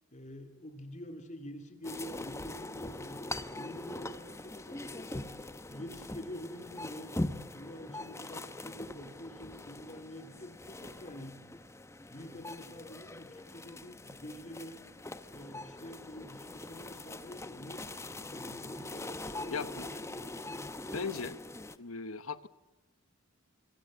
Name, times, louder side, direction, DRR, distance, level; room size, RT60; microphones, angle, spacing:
voice 1, 0.1-3.2 3.6-5.3 5.7-7.1 7.5-11.5 12.1-14.8 15.3-20.3, left 1 dB, 35° left, 6 dB, 2.7 m, -47 dB
sound 1, 1.8-21.8, left 2 dB, 15° left, 1.0 m, -42 dB
voice 2, 19.5-19.9 20.9-21.4 21.8-22.5, left 4 dB, 75° left, 14 dB, 1.2 m, -37 dB
25.5 x 25.0 x 7.4 m, 1.1 s
head